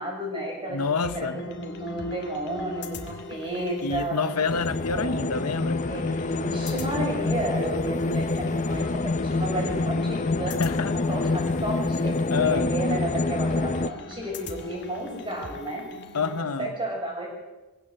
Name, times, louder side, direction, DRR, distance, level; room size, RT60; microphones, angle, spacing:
voice 1, 0.0-4.2 4.9-5.3 5.9-10.6 11.1-15.8 16.3-17.3, right 1 dB, 25° right, -1 dB, 7.5 m, -32 dB
voice 2, 0.7-1.5 3.1-3.2 3.8-5.9 10.5-10.9 12.3-12.8 16.1-16.7, left 5 dB, 85° left, 12 dB, 1.0 m, -28 dB
sound 1, 1.0-16.4, left 2 dB, 50° left, 2.4 m, -40 dB
sound 2, 4.5-13.9, left 3 dB, 35° left, 0.6 m, -27 dB
22.0 x 17.0 x 7.9 m, 1.1 s
head